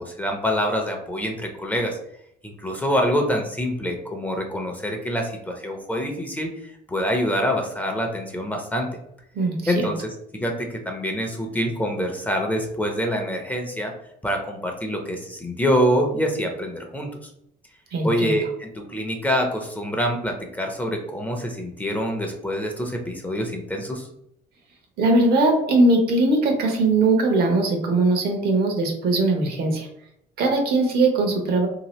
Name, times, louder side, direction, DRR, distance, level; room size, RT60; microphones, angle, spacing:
voice 1, 0.0-2.0 2.4-9.0 9.7-13.9 14.2-17.1 18.0-24.1, equal, 10° left, 2 dB, 0.6 m, -26 dB
voice 2, 9.3-9.9 17.9-18.4 25.0-29.9 30.4-31.7, right 2 dB, 65° right, 3 dB, 0.9 m, -20 dB
2.8 x 2.4 x 3.0 m, 0.74 s
cardioid pair, 110°, 17 cm